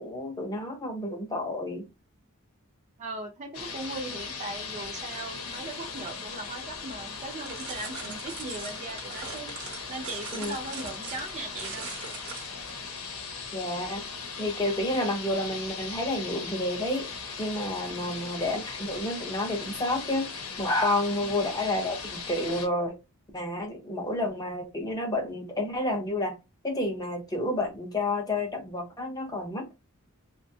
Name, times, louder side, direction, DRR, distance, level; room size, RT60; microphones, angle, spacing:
voice 1, 0.0-1.9 10.3-10.5 13.5-14.0 14.4-17.1 17.4-20.3 20.6-23.0 23.3-26.4 26.6-29.8, left 1 dB, 15° left, 0.6 m, -30 dB
voice 2, 3.0-9.5 9.9-11.9 17.9-18.1 21.2-21.5, right 2 dB, 35° right, 0.5 m, -39 dB
sound 1, 3.5-22.7, left 5 dB, 75° left, 0.7 m, -39 dB
sound 2, 7.5-12.8, right 5 dB, 70° right, 0.8 m, -41 dB
2.6 x 2.2 x 2.6 m
head